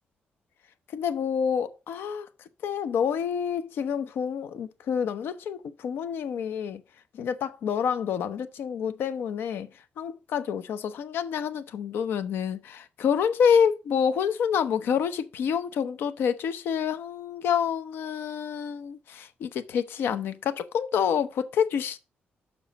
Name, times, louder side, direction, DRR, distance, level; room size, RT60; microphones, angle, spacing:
voice 1, 0.9-2.3 2.6-6.8 7.1-9.7 10.0-22.0, left 7 dB, 75° left, 0.8 m, -28 dB
7.1 x 5.3 x 4.0 m
wide cardioid pair, 170°, 4 cm